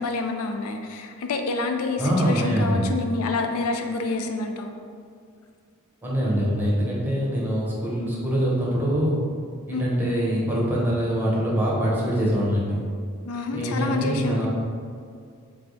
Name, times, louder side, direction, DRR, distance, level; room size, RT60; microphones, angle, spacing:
voice 1, 0.0-4.7 9.7-9.9 13.2-14.5, left 3 dB, 85° left, 5 dB, 0.4 m, -27 dB
voice 2, 2.0-2.9 6.0-9.1 9.7-12.8 13.5-14.5, equal, 10° right, -6 dB, 0.9 m, -24 dB
3.4 x 3.2 x 3.9 m, 2.2 s
head